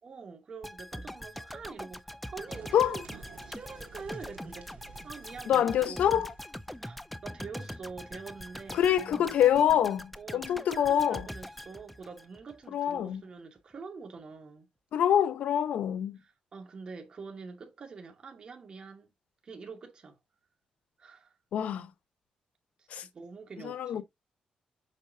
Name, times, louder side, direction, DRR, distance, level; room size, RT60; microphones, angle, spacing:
voice 1, 0.0-3.0 3.5-4.7 5.0-6.3 6.8-9.3 10.2-14.7 16.1-19.1 19.4-20.2 21.0-21.3 22.8-24.0, right 4 dB, 40° right, 2.2 m, -45 dB
sound 1, 0.6-12.6 13.0-13.1, equal, 5° left, 0.5 m, -43 dB
sound 2, 2.5-6.8, right 6 dB, 80° right, 2.2 m, -52 dB
voice 2, 5.5-6.3 8.7-11.3 12.7-13.2 14.9-16.2 21.5-21.9 22.9-23.1 23.6-24.0, left 10 dB, 75° left, 0.9 m, -26 dB
8.0 x 5.6 x 2.8 m
wide cardioid pair, 155°, 2 cm